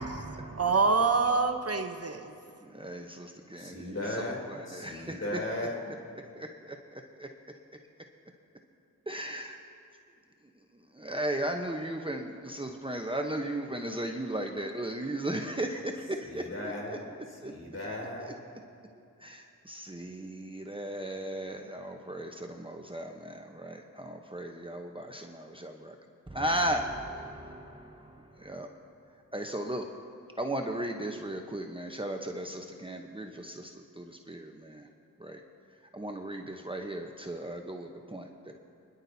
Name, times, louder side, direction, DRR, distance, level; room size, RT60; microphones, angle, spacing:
voice 1, 0.0-2.3, right 4 dB, 45° right, 6 dB, 0.9 m, -27 dB
voice 2, 2.6-5.3 6.3-7.3 9.1-9.6 11.0-16.0 16.3-16.7 17.4-17.5 19.2-25.9 26.3-28.7 29.3-29.9 30.4-34.9 35.2-35.4 35.9-38.5, right 1 dB, 15° right, 3 dB, 0.9 m, -36 dB
voice 3, 3.6-5.8 16.3-17.0 17.4-18.3, left 1 dB, 45° left, -1 dB, 3.2 m, -36 dB
26.0 x 11.0 x 2.8 m, 2.6 s
cardioid pair, 50°, 34 cm